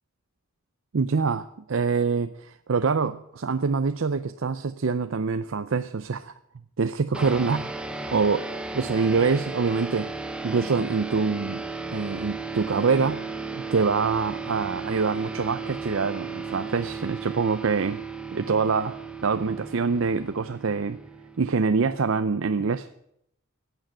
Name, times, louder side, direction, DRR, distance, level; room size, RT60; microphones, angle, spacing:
voice 1, 0.9-6.3 6.8-7.7 8.1-10.1 10.4-11.6 11.9-13.3 13.5-18.0 18.3-19.0 19.2-21.0 21.4-22.9, right 5 dB, 65° right, 11 dB, 0.5 m, -25 dB
sound 1, 7.1-22.0, right 4 dB, 5° right, 0.8 m, -35 dB
15.5 x 9.0 x 8.8 m, 0.78 s
head